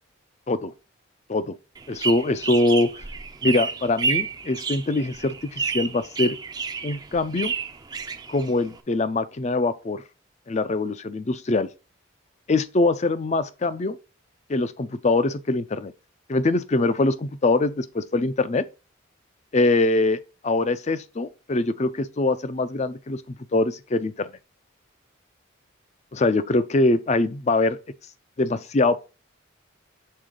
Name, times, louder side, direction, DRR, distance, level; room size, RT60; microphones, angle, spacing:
sound 1, 1.7-8.8, right 4 dB, 20° right, 0.5 m, -30 dB
voice 1, 1.9-2.9 3.4-6.4 6.8-7.5 8.3-10.0 10.5-11.7 12.5-14.0 14.5-15.9 16.3-18.7 19.5-20.2 20.4-23.2 23.5-24.3 26.1-27.8 28.4-29.0, left 2 dB, 35° left, 0.5 m, -23 dB
6.6 x 3.8 x 3.7 m
head